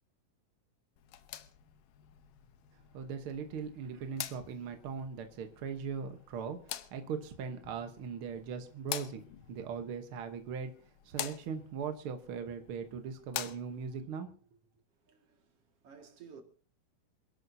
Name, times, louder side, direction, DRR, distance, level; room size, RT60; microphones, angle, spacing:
sound 1, 1.0-14.0, left 12 dB, 75° left, 2.4 m, -46 dB
voice 1, 2.9-10.7 11.0-14.3, right 6 dB, 65° right, 1.3 m, -40 dB
voice 2, 15.1-15.5 15.8-16.4, right 6 dB, 50° right, 2.7 m, -53 dB
27.5 x 11.5 x 2.7 m
omnidirectional pair, 4.0 m